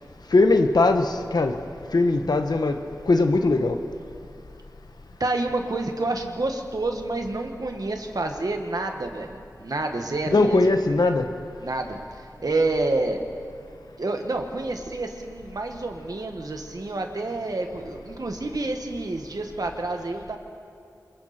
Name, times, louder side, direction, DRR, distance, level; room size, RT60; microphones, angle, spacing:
voice 1, 0.3-1.5 1.9-2.8 3.1-3.8 10.3-11.3, left 3 dB, 90° left, 6 dB, 1.2 m, -20 dB
voice 2, 5.2-10.6 11.6-13.2 14.0-20.4, right 2 dB, 70° right, 4 dB, 1.8 m, -28 dB
27.0 x 21.5 x 4.5 m, 2.4 s
wide cardioid pair, 65°, 7 cm